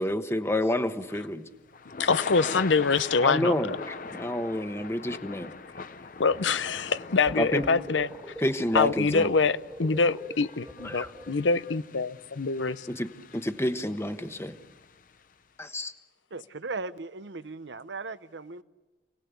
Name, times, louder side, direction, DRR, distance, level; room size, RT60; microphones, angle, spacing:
voice 1, 0.0-1.5 3.2-5.5 7.4-7.7 8.4-9.3 10.8-11.1 12.9-14.6 15.6-15.9, left 1 dB, 15° left, 8 dB, 1.1 m, -29 dB
Thunder / Rain, 1.0-15.2, left 4 dB, 45° left, 0.7 m, -42 dB
voice 2, 2.0-3.5 6.2-8.1 8.7-12.9, left 4 dB, 90° left, 15 dB, 0.7 m, -25 dB
sound 1, 7.3-11.7, right 1 dB, 5° right, 1.8 m, -43 dB
voice 3, 16.3-18.6, right 3 dB, 75° right, 14 dB, 0.9 m, -37 dB
29.0 x 19.0 x 8.2 m, 1.2 s
head